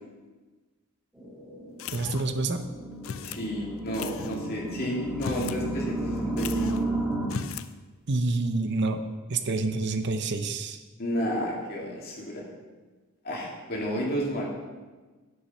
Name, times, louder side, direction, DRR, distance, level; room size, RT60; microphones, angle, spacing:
sound 1, 1.2-7.3, right 2 dB, 5° right, 1.9 m, -33 dB
sound 2, 1.8-2.4 3.0-3.4 3.9-4.4 5.1-5.6 5.9-6.0 6.4-6.9 7.2-7.7, left 6 dB, 70° left, 0.5 m, -37 dB
voice 1, 1.9-2.7 8.1-9.0 9.3-10.8, right 3 dB, 55° right, 8 dB, 0.7 m, -27 dB
voice 2, 3.2-6.7 11.0-12.4 13.2-14.4, equal, 45° left, -3 dB, 2.7 m, -31 dB
10.0 x 8.3 x 5.5 m, 1.3 s
head